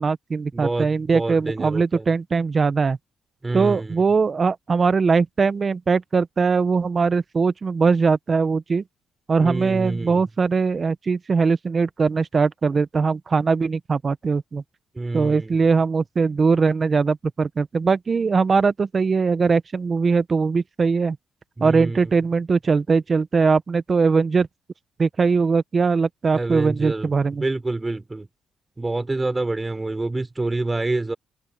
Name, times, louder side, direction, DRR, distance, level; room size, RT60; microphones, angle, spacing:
voice 1, 0.0-3.0 3.5-8.8 9.3-14.6 15.1-21.2 21.6-24.5 25.0-27.4, right 4 dB, 40° right, 1.1 m, -21 dB
voice 2, 0.5-2.1 3.4-4.0 9.4-10.2 15.0-15.7 21.6-22.1 26.3-28.3 28.8-31.1, right 2 dB, 20° right, 4.1 m, -27 dB
open air
cardioid pair, 80°, 0 cm